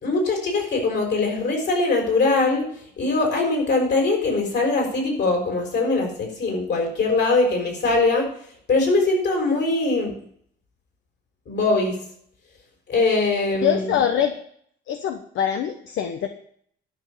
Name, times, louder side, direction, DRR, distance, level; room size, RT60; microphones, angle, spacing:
voice 1, 0.0-2.7 3.0-8.3 8.7-10.1 11.5-12.0 12.9-13.9, left 3 dB, 60° left, 2 dB, 5.7 m, -22 dB
voice 2, 13.6-14.3 14.9-16.3, left 9 dB, 80° left, 7 dB, 1.1 m, -23 dB
11.5 x 5.9 x 8.5 m, 0.63 s
cardioid pair, 90°, 20 cm